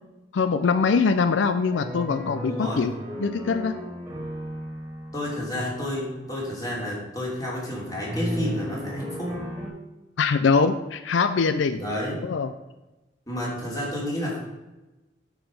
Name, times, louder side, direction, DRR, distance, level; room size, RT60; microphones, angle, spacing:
voice 1, 0.3-2.9 3.2-3.8 10.2-11.8 12.2-12.5, left 5 dB, 85° left, 11 dB, 0.4 m, -23 dB
sound 1, 1.7-6.7 8.1-9.7, equal, 15° right, 2.2 m, -35 dB
voice 2, 2.5-2.8 5.1-9.4 11.7-12.2 13.3-14.4, left 1 dB, 20° left, -5 dB, 3.0 m, -30 dB
9.0 x 4.9 x 5.3 m, 1.1 s
head